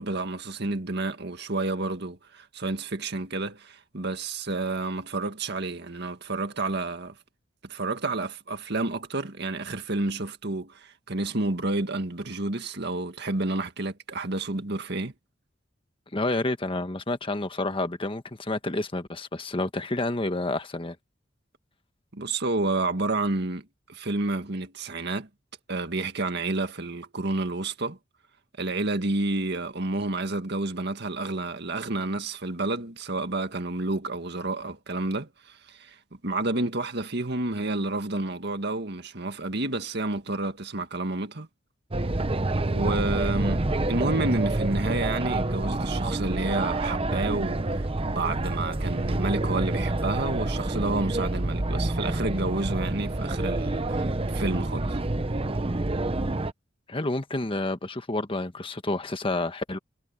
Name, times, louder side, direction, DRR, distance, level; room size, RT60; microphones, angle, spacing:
voice 1, 0.0-7.1 7.6-15.1 22.1-25.3 25.7-28.0 28.6-36.0 36.2-41.5 42.7-55.0, right 2 dB, 60° right, 2.0 m, -30 dB
voice 2, 16.1-21.0 56.9-59.8, left 2 dB, 30° left, 1.4 m, -29 dB
sound 1, 41.9-56.5, right 2 dB, 30° right, 0.9 m, -27 dB
head